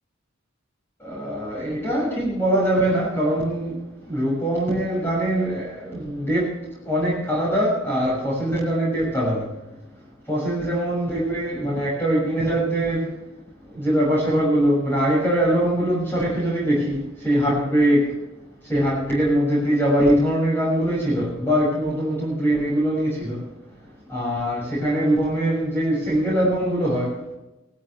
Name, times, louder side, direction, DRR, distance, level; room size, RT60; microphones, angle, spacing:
voice 1, 1.0-6.5 6.8-9.5 10.3-13.1 13.7-18.2 18.6-23.5 24.1-27.2, right 1 dB, 10° left, 6.4 m, -22 dB
18.5 x 15.0 x 3.3 m
head